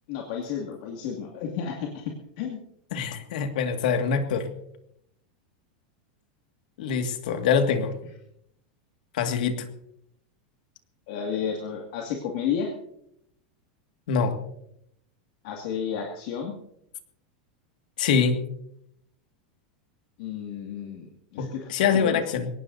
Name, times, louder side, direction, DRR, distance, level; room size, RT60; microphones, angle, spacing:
voice 1, 0.1-2.6 11.1-12.7 15.4-16.5 20.2-22.2, left 7 dB, 55° left, 0 dB, 2.2 m, -32 dB
voice 2, 2.9-4.5 6.8-7.9 9.1-9.7 14.1-14.4 18.0-18.4 21.4-22.5, left 6 dB, 70° left, 7 dB, 2.0 m, -24 dB
22.0 x 18.5 x 2.7 m, 0.76 s
supercardioid pair, 160°, 5 cm